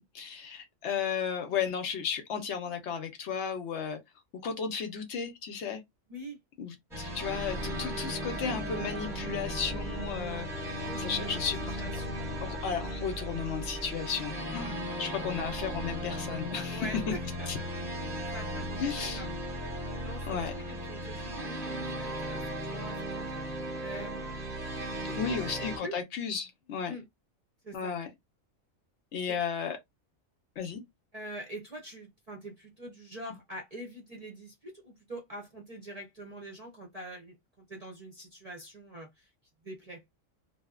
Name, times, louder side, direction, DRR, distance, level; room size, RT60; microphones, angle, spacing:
voice 1, 0.0-4.0 4.4-5.8 6.6-11.8 12.4-16.9 17.5-17.6 18.8-19.3 20.3-20.5 25.2-26.9 27.7-28.1 29.1-29.8 30.6-30.8, left 7 dB, 65° left, 0.8 m, -34 dB
sound 1, 6.9-25.8, equal, ahead, 0.8 m, -36 dB
voice 2, 10.9-11.5 11.8-12.2 16.7-17.5 18.3-19.5 20.0-24.4 25.1-26.0 26.8-27.0 27.6-28.0 29.3-29.4 31.1-39.3 39.6-40.0, right 1 dB, 45° right, 0.5 m, -45 dB
2.7 x 2.0 x 2.3 m
omnidirectional pair, 1.4 m